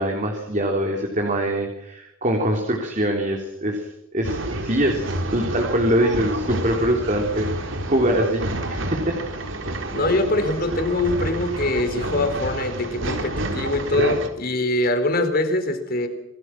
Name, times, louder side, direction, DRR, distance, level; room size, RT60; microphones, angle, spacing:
voice 1, 0.0-3.9 4.1-9.2, right 1 dB, 40° right, 2 dB, 3.6 m, -23 dB
Male speech man speaking / Chatter / Rattle, 4.2-14.3, right 1 dB, 70° right, 3.8 m, -29 dB
voice 2, 9.9-16.1, left 2 dB, 45° left, 8 dB, 4.2 m, -23 dB
27.5 x 19.0 x 6.3 m, 0.90 s
head